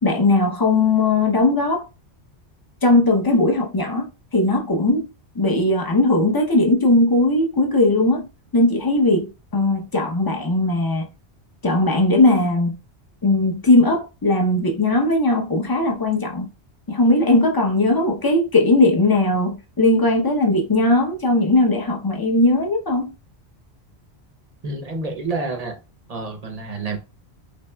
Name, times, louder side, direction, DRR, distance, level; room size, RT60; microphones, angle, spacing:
voice 1, 0.0-1.8 2.8-4.1 4.3-5.1 5.3-8.2 8.5-11.0 11.6-12.7 13.2-16.5 16.9-23.1, left 2 dB, 25° left, 0.7 m, -18 dB
voice 2, 24.6-25.8 26.1-27.0, right 3 dB, 40° right, 0.7 m, -28 dB
4.4 x 3.2 x 2.2 m
omnidirectional pair, 1.1 m